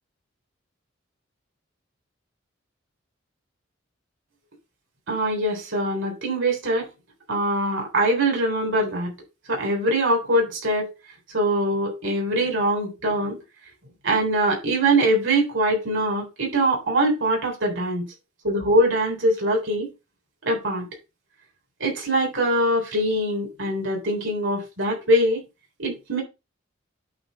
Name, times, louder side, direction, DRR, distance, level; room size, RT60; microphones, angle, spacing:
voice 1, 5.1-6.9 7.3-9.1 9.5-10.9 11.3-13.4 14.0-18.1 18.4-19.9 20.4-20.9 21.8-25.4 25.8-26.2, right 1 dB, 75° right, 3.5 m, -23 dB
8.8 x 3.2 x 6.3 m
head